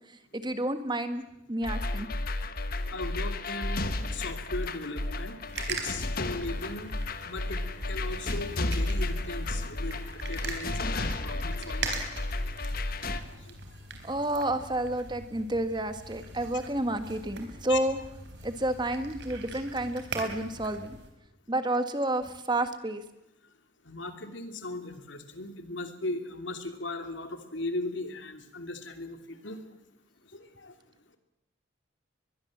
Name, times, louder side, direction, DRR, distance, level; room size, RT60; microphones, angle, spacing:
voice 1, 0.3-2.1 14.0-18.0 18.4-21.0 21.5-23.0, right 1 dB, 25° right, 10 dB, 1.5 m, -30 dB
sound 1, 1.6-13.2, left 2 dB, 50° left, 1.4 m, -32 dB
voice 2, 2.9-5.4 5.7-6.9 7.2-12.0 13.3-13.5 13.9-14.0 17.7-17.8 23.8-29.6 30.3-30.7, left 2 dB, 75° left, 7 dB, 2.7 m, -38 dB
sound 2, 5.5-21.1, right 3 dB, 65° right, 4.0 m, -42 dB
22.5 x 21.5 x 7.4 m, 0.87 s
head